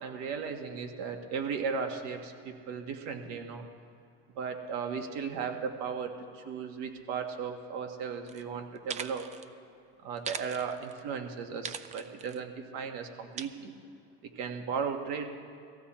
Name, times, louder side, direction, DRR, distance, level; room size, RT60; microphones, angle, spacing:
voice 1, 0.0-3.7 4.3-9.3 10.0-13.7 14.2-15.3, right 6 dB, 60° right, 5 dB, 1.8 m, -36 dB
sound 1, 8.3-8.4 8.8-9.5 10.2-11.0 11.6-12.4 13.4-13.5, right 7 dB, 20° right, 0.5 m, -40 dB
18.5 x 15.0 x 4.4 m, 2.4 s
supercardioid pair, 130°, 31 cm